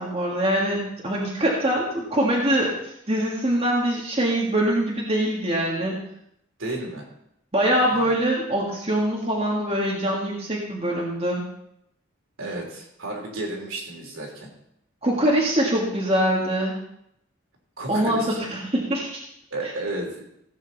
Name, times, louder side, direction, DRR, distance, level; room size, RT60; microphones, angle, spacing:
voice 1, 0.0-2.8 3.1-6.0 7.5-11.4 15.0-16.7 17.9-19.2, right 1 dB, 30° right, -3 dB, 1.7 m, -23 dB
voice 2, 6.6-7.1 7.8-8.1 12.4-14.5 17.8-18.4 19.5-20.3, right 2 dB, 70° right, -1 dB, 3.3 m, -32 dB
16.0 x 8.1 x 4.1 m, 0.77 s
head